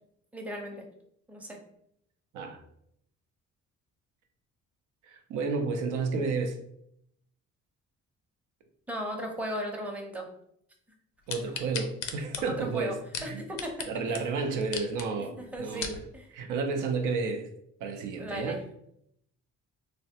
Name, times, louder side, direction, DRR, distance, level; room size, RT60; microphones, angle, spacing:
voice 1, 0.3-0.8 1.3-1.6 8.9-10.3 12.6-12.9 13.2-13.9 15.5-16.3 18.2-18.6, equal, 5° right, 1 dB, 0.6 m, -36 dB
voice 2, 5.0-6.5 11.3-13.4 13.9-16.0 16.3-17.5 17.8-18.6, right 4 dB, 85° right, 5 dB, 0.5 m, -31 dB
sound 1, 11.3-13.9 14.1-14.2 14.6-15.1 15.5-16.0 16.6-16.7, left 7 dB, 85° left, 0.5 m, -36 dB
3.2 x 2.1 x 2.7 m, 0.72 s
cardioid pair, 90°, 30 cm